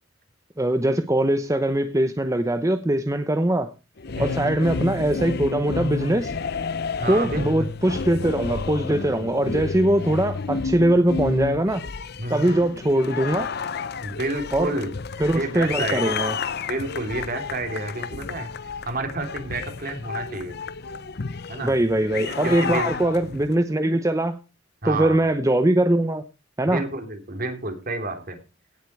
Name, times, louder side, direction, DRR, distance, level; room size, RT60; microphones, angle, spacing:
voice 1, 0.6-3.7 4.2-6.3 7.1-11.9 12.3-13.5 14.5-14.7 15.2-16.3 21.6-24.4 24.8-26.2 26.6-26.8, right 1 dB, 15° right, 0.8 m, -22 dB
sound 1, 4.0-23.5, left 5 dB, 55° left, 0.7 m, -31 dB
voice 2, 7.0-7.7 12.2-12.6 14.0-14.9 15.3-16.3 16.7-18.5 18.8-20.6 21.5-21.7 22.2-23.0 24.8-25.3 26.6-28.4, right 2 dB, 50° right, 3.2 m, -30 dB
17.5 x 7.5 x 4.7 m
head